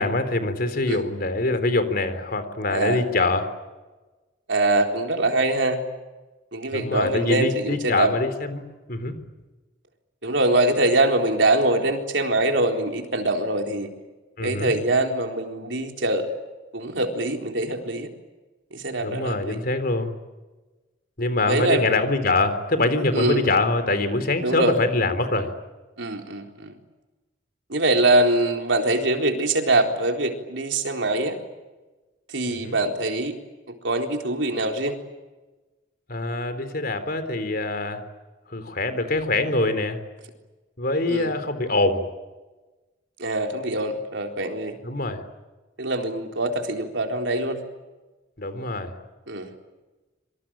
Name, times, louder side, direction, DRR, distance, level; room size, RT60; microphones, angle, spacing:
voice 1, 0.0-3.5 6.7-8.6 8.9-9.1 14.4-14.7 19.0-20.1 21.2-25.5 32.5-32.8 36.1-38.0 38.5-40.0 40.8-42.0 44.8-45.2 48.4-48.9, left 2 dB, 50° left, 10 dB, 3.8 m, -24 dB
voice 2, 2.7-3.0 4.5-5.8 6.5-8.1 10.2-13.9 14.4-16.3 16.7-18.1 18.7-19.6 21.5-21.9 23.1-23.5 24.4-24.7 26.0-26.8 27.7-31.4 32.3-33.4 33.8-35.0 41.1-41.3 43.2-44.8 45.8-47.6 49.3-49.5, right 2 dB, 75° right, 4 dB, 4.0 m, -23 dB
26.5 x 25.0 x 9.0 m, 1.2 s
head